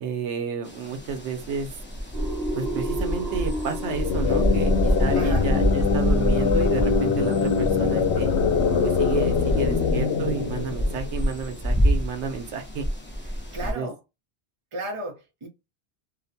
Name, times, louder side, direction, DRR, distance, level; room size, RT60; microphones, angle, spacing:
voice 1, 0.0-1.7 2.5-8.3 8.8-12.9 13.6-13.9, right 5 dB, 85° right, 0.9 m, -31 dB
sound 1, 0.6-13.7, equal, 20° left, 0.3 m, -27 dB
sound 2, 2.1-6.8, right 1 dB, 60° right, 0.9 m, -34 dB
sound 3, 3.8-11.4, left 6 dB, 85° left, 0.9 m, -23 dB
voice 2, 5.1-5.5 13.2-14.0 14.7-15.5, right 1 dB, 30° right, 0.8 m, -34 dB
2.5 x 2.1 x 2.6 m
omnidirectional pair, 1.1 m